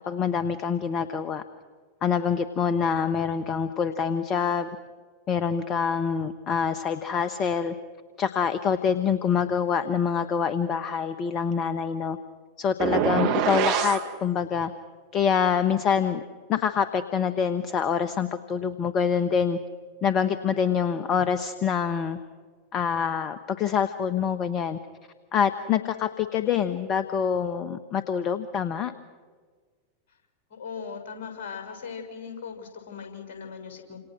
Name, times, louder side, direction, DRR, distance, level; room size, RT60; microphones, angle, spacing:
voice 1, 0.1-1.4 2.0-4.7 5.3-7.7 8.2-12.2 12.6-14.7 15.1-16.2 16.5-19.6 20.0-22.2 22.7-24.8 25.3-28.9, left 7 dB, 30° left, 11 dB, 1.3 m, -25 dB
sound 1, 12.8-14.1, right 9 dB, 45° right, 2.1 m, -24 dB
voice 2, 30.5-34.0, left 6 dB, 50° left, 4 dB, 6.3 m, -39 dB
29.5 x 27.0 x 6.3 m, 1.5 s
figure-of-eight pair, 90°, 0 cm